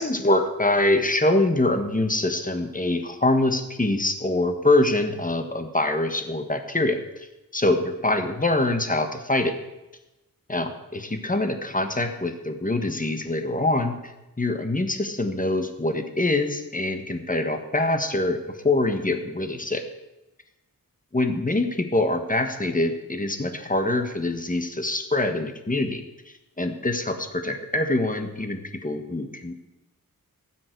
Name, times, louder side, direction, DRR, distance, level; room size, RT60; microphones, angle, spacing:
voice 1, 0.0-7.0 7.5-9.6 10.5-14.0 14.4-19.8 21.1-26.0 26.6-29.5, left 2 dB, 25° left, 7 dB, 1.5 m, -24 dB
19.0 x 7.7 x 4.7 m, 0.98 s
wide cardioid pair, 75°, 35 cm